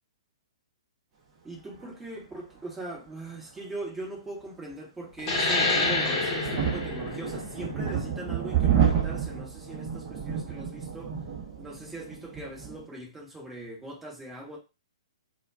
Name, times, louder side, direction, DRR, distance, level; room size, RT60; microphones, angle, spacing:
voice 1, 1.4-11.1 11.6-14.6, right 2 dB, 10° right, 0.9 m, -40 dB
sound 1, 5.2-10.3, left 2 dB, 30° left, 0.8 m, -29 dB
sound 2, 5.3-12.9, right 8 dB, 25° right, 0.7 m, -30 dB
2.2 x 2.2 x 3.4 m
figure-of-eight pair, 120°, 3 cm